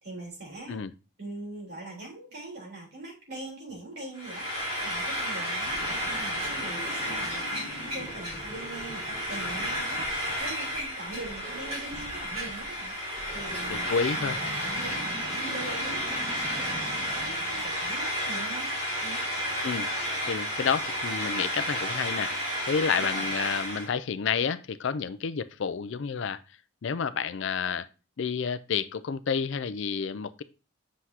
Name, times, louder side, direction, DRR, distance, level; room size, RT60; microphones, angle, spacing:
voice 1, 0.0-0.8 1.2-18.7 19.0-19.2 22.9-23.3, right 2 dB, 50° right, -3 dB, 3.6 m, -42 dB
Frying (food), 4.1-23.9, equal, 30° right, 3.9 m, -32 dB
sound 1, 5.6-18.1, equal, 5° right, 1.6 m, -45 dB
voice 2, 13.7-14.3 19.6-19.9 20.3-22.3 22.7-26.4 26.8-27.9 28.2-30.4, left 6 dB, 60° left, 14 dB, 0.4 m, -30 dB
7.9 x 6.1 x 2.8 m, 0.32 s
head